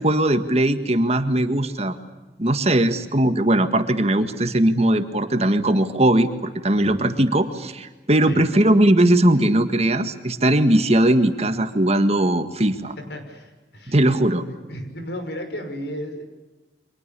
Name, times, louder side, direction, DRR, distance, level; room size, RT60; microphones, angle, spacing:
voice 1, 0.0-2.0 2.4-12.9 13.9-14.4, right 1 dB, 35° right, 8 dB, 1.8 m, -19 dB
voice 2, 13.1-14.0 14.7-16.2, equal, 75° left, 6 dB, 5.9 m, -34 dB
30.0 x 25.5 x 7.0 m, 1.2 s
head